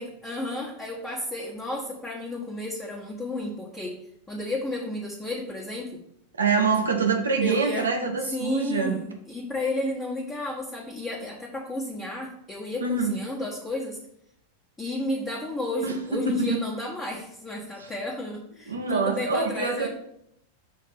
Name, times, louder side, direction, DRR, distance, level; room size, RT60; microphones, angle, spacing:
voice 1, 0.0-4.0 4.3-6.0 7.4-7.8 8.3-14.0 14.8-19.9, left 1 dB, 10° left, -5 dB, 1.3 m, -32 dB
voice 2, 6.4-9.0 12.8-13.1 15.8-16.6 17.8-17.9 18.7-19.9, right 4 dB, 75° right, 3 dB, 1.1 m, -25 dB
6.5 x 3.2 x 5.8 m, 0.72 s
figure-of-eight pair, 90°, 0 cm